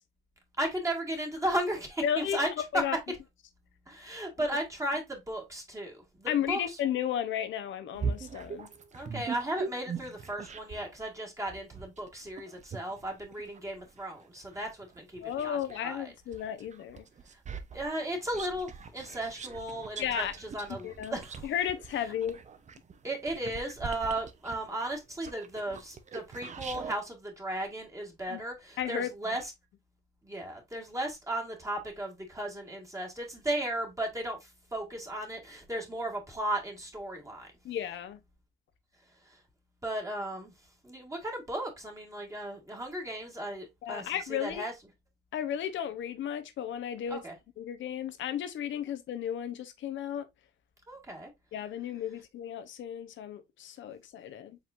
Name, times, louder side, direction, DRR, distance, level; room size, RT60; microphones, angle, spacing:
voice 1, 0.6-2.5 2.7-2.8 3.9-6.8 8.9-16.1 17.3-17.4 17.7-21.4 23.0-29.5 30.2-37.5 39.2-39.4 39.8-40.5 40.8-44.7 47.1-47.3 50.9-51.3, right 1 dB, 15° right, 1.6 m, -35 dB
voice 2, 2.0-2.4 2.7-3.0 6.3-8.7 15.2-17.1 20.0-20.3 20.8-22.4 28.3-28.4 28.8-29.4 37.6-38.2 43.8-44.6 45.3-47.2 47.6-50.3 51.5-54.6, left 9 dB, 75° left, 0.8 m, -34 dB
sound 1, 7.9-10.9 11.5-15.8 16.3-27.0, right 5 dB, 35° right, 0.7 m, -41 dB
4.8 x 3.6 x 2.5 m
cardioid pair, 90°, 20 cm